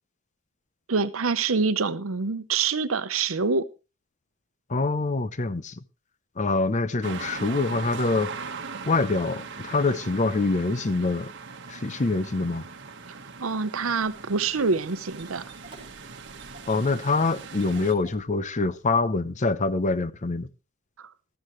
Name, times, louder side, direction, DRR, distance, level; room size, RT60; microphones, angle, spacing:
voice 1, 0.9-3.7 13.1-15.4 21.0-21.1, right 4 dB, 80° right, 0.8 m, -26 dB
voice 2, 4.7-5.8 6.4-8.3 8.8-11.3 11.7-12.7 16.7-20.5, left 3 dB, 35° left, 0.7 m, -25 dB
sound 1, 7.0-17.9, right 5 dB, 60° right, 1.4 m, -40 dB
Engine starting, 14.0-19.0, right 3 dB, 25° right, 5.9 m, -52 dB
14.5 x 13.5 x 3.1 m
head